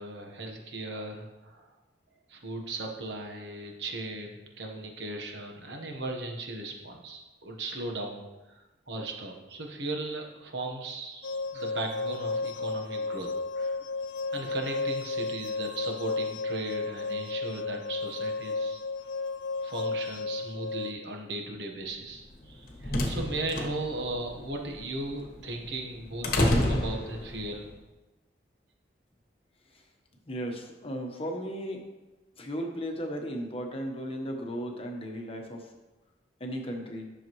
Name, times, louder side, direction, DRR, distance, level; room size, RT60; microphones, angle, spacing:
voice 1, 0.0-1.7 2.3-13.9 14.3-18.8 19.6-27.7, right 2 dB, 70° right, 2 dB, 1.2 m, -37 dB
sound 1, 11.2-20.9, left 3 dB, 80° left, 0.4 m, -33 dB
sound 2, 22.3-27.6, left 1 dB, 55° left, 1.2 m, -30 dB
voice 2, 30.2-31.8 32.4-35.7 36.4-37.1, equal, 35° left, 2 dB, 1.1 m, -35 dB
10.5 x 6.4 x 3.1 m, 1.1 s
head